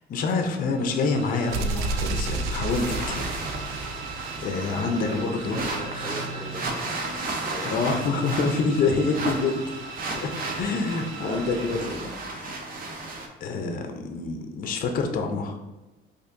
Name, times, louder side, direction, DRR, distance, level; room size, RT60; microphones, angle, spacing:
voice 1, 0.0-3.3 3.5-3.7 4.4-5.6 7.6-9.6 10.1-12.1 13.4-15.6, left 4 dB, 40° left, 5 dB, 0.5 m, -27 dB
sound 1, 0.7-12.5, right 5 dB, 70° right, 0.9 m, -40 dB
sound 2, 1.5-5.4, right 3 dB, 85° right, 0.4 m, -31 dB
sound 3, 2.7-13.3, right 2 dB, 45° right, 0.7 m, -34 dB
voice 2, 5.1-7.7 8.1-8.2 11.2-12.1, equal, 25° right, -1 dB, 1.0 m, -38 dB
4.4 x 2.6 x 2.5 m, 1.1 s
cardioid pair, 100°, 21 cm